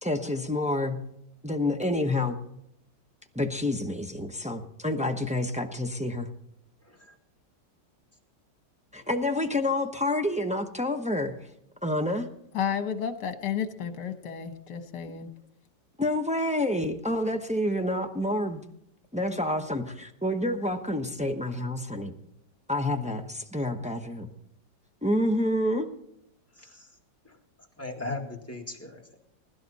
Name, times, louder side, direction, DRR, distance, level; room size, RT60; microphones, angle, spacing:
voice 1, 0.0-1.0 1.4-2.4 3.3-6.3 8.9-11.3 11.8-12.3 16.0-18.6 19.1-22.1 22.7-24.3 25.0-25.9, left 1 dB, 5° right, 4 dB, 0.5 m, -28 dB
voice 2, 12.5-15.3, left 8 dB, 65° left, 8 dB, 1.8 m, -32 dB
voice 3, 26.6-26.9 27.3-27.4 27.8-29.2, left 2 dB, 10° left, 1 dB, 1.8 m, -38 dB
21.0 x 12.0 x 4.2 m, 0.75 s
omnidirectional pair, 2.0 m